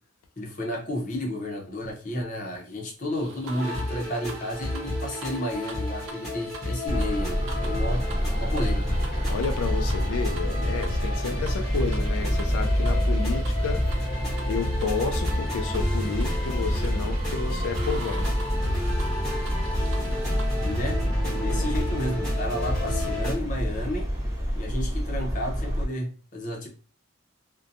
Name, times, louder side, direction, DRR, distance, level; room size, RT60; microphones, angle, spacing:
voice 1, 0.4-8.1 8.4-8.9 20.6-21.0 21.3-24.1 24.5-26.7, left 1 dB, 40° left, 0.6 m, -32 dB
sound 1, 3.1-20.7, right 3 dB, 65° right, 0.4 m, -45 dB
sound 2, 3.6-23.3, left 1 dB, ahead, 1.0 m, -32 dB
Traffic noise roadway noise, 6.9-25.8, equal, 15° right, 0.6 m, -27 dB
voice 2, 9.3-13.8 14.5-18.3 21.4-21.7, left 5 dB, 85° left, 0.4 m, -31 dB
2.6 x 2.2 x 2.5 m
head